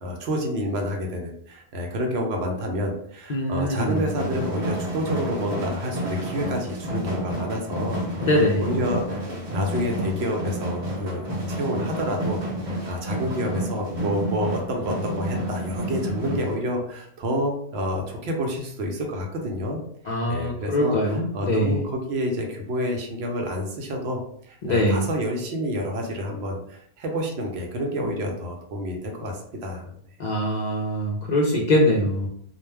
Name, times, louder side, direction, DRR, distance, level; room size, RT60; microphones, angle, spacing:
voice 1, 0.0-8.0 8.6-12.4 12.7-19.8 20.3-24.2 24.5-29.9, equal, 75° right, 1 dB, 0.9 m, -29 dB
voice 2, 3.3-4.1 8.2-8.7 20.1-21.8 24.6-25.1 30.2-32.3, left 1 dB, 55° left, -2 dB, 0.5 m, -23 dB
sound 1, 3.8-16.5, equal, 45° right, 0.9 m, -30 dB
2.3 x 2.1 x 3.2 m, 0.68 s
omnidirectional pair, 1.1 m